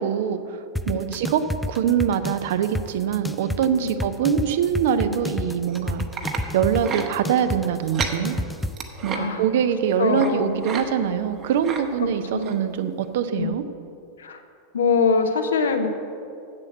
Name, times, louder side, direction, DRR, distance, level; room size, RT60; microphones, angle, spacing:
voice 1, 0.0-6.0 6.5-8.4 9.0-13.6, right 8 dB, 55° right, 10 dB, 0.6 m, -24 dB
sound 1, 0.8-8.8, left 1 dB, 5° left, 0.3 m, -30 dB
sound 2, 5.7-6.4 6.8-7.1 7.8-8.2 8.6-9.2 10.2-10.3 10.6-10.8 11.2-11.8 12.4-12.6 13.0-13.1, right 6 dB, 30° right, 0.9 m, -31 dB
voice 2, 9.1-9.6 10.0-10.6 11.1-11.2 12.0-12.5 13.3-13.5 14.2-14.4 14.7-15.9, left 5 dB, 65° left, 7 dB, 0.8 m, -23 dB
7.7 x 7.5 x 7.5 m, 2.5 s
figure-of-eight pair, 90°, 0 cm